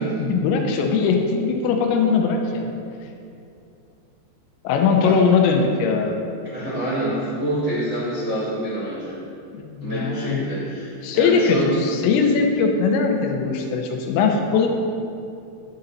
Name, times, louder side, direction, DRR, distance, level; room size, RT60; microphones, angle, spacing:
voice 1, 0.0-2.7 4.6-6.2 9.5-10.4 11.0-14.7, left 5 dB, 90° left, 3 dB, 2.9 m, -20 dB
voice 2, 6.4-9.2 9.8-11.7, right 1 dB, 75° right, -12 dB, 0.9 m, -27 dB
10.5 x 3.9 x 4.2 m, 2.6 s
omnidirectional pair, 5.1 m